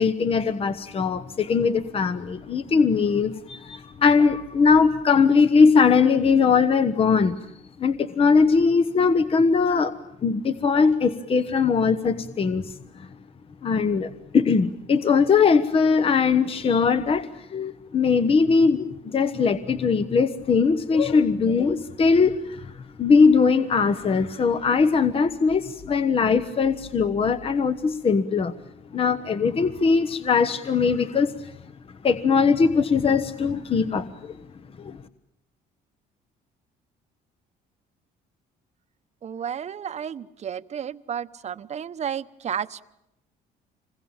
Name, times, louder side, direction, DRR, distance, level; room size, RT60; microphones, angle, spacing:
voice 1, 0.0-7.4 7.8-9.9 10.2-12.7 13.6-22.7 23.0-28.5 28.9-31.3 32.0-34.4 34.8-35.0, left 5 dB, 35° left, 12 dB, 1.1 m, -20 dB
voice 2, 39.2-42.8, right 8 dB, 40° right, 12 dB, 1.0 m, -32 dB
26.5 x 22.0 x 8.9 m, 0.84 s
cardioid pair, 110°, 17 cm